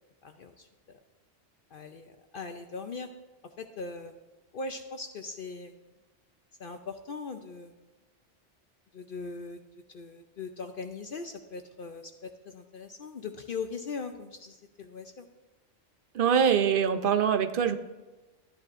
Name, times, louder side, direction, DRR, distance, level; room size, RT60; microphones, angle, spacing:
voice 1, 0.2-0.7 1.7-3.1 3.6-4.2 4.5-5.8 6.6-7.7 8.9-9.6 9.9-15.3, left 4 dB, 55° left, 6 dB, 0.7 m, -40 dB
voice 2, 16.1-17.8, right 7 dB, 55° right, 10 dB, 0.8 m, -24 dB
13.0 x 9.9 x 2.5 m, 1.1 s
omnidirectional pair, 1.2 m